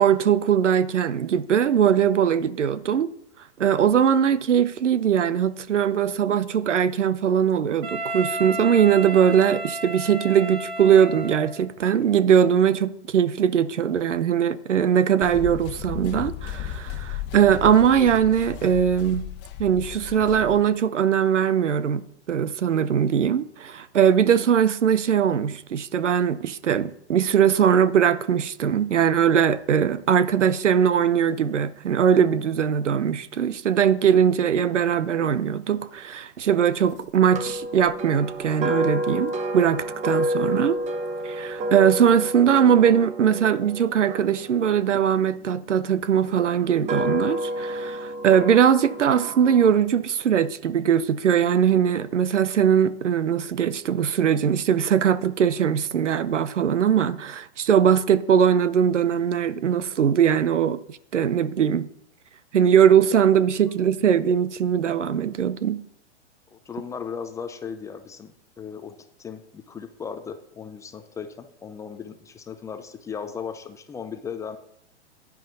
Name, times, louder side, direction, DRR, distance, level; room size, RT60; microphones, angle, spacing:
voice 1, 0.0-3.1 3.6-19.2 19.6-22.0 22.3-40.8 41.2-61.9 62.5-65.8, right 8 dB, 85° right, 0.7 m, -21 dB
Wind instrument woodwind instrument, 7.8-11.7, right 1 dB, 50° right, 2.7 m, -32 dB
sound 1, 15.2-20.6, left 11 dB, 30° left, 1.1 m, -35 dB
sound 2, 37.3-45.5 46.2-49.7, right 1 dB, 20° right, 0.8 m, -30 dB
voice 2, 66.5-74.6, left 6 dB, 10° left, 0.4 m, -37 dB
10.5 x 9.2 x 3.9 m
hypercardioid pair, 120°, 35 cm